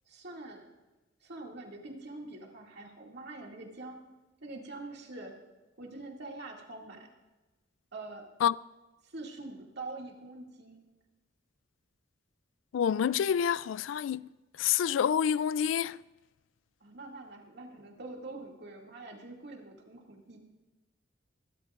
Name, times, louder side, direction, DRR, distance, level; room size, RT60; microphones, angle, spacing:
voice 1, 0.1-0.8 1.2-4.0 4.4-5.4 5.8-7.1 7.9-8.3 9.0-10.9 16.8-20.4, right 2 dB, 60° right, 2.3 m, -45 dB
voice 2, 12.7-14.3 14.6-16.0, left 8 dB, 80° left, 0.3 m, -27 dB
23.5 x 12.5 x 2.5 m
head